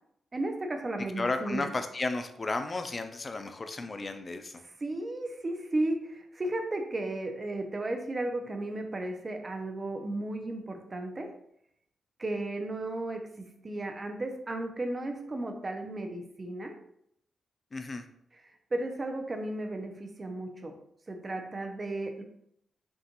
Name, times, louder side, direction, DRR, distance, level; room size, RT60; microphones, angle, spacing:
voice 1, 0.3-1.7 4.8-11.3 12.2-16.8 18.7-20.8 21.1-22.2, right 2 dB, 30° right, 4 dB, 0.6 m, -34 dB
voice 2, 1.2-4.6 17.7-18.1, left 3 dB, 30° left, 7 dB, 0.4 m, -33 dB
5.3 x 2.4 x 2.9 m, 0.71 s
cardioid pair, 115°, 0 cm